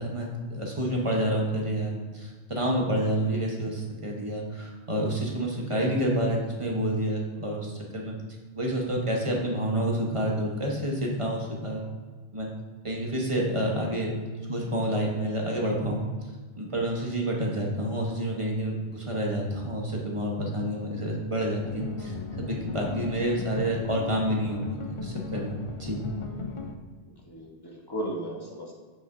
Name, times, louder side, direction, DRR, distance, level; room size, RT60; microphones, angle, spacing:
voice 1, 0.0-8.1 8.5-11.9 12.3-12.5 12.8-14.1 14.5-16.0 16.6-26.0, right 1 dB, 30° right, -1 dB, 1.1 m, -29 dB
voice 2, 13.4-13.8 27.0-28.7, right 1 dB, 20° left, -2 dB, 1.3 m, -36 dB
sound 1, 21.6-26.7, left 3 dB, 45° left, 0.4 m, -36 dB
7.4 x 6.5 x 2.7 m, 1.4 s
omnidirectional pair, 1.2 m